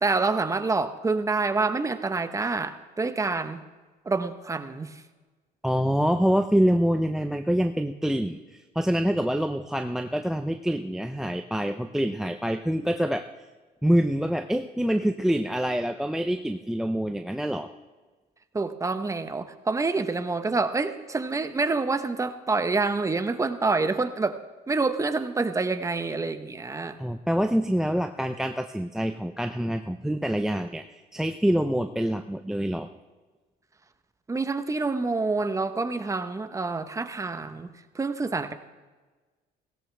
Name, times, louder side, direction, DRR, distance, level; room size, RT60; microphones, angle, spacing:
voice 1, 0.0-3.6 4.0-5.0 18.5-24.4 24.7-27.0 34.3-38.5, right 3 dB, 20° right, 10 dB, 0.9 m, -27 dB
voice 2, 5.6-13.3 13.8-17.7 27.0-32.9, equal, 5° right, 9 dB, 0.5 m, -26 dB
17.5 x 17.0 x 3.4 m, 1.3 s
cardioid pair, 110°, 17 cm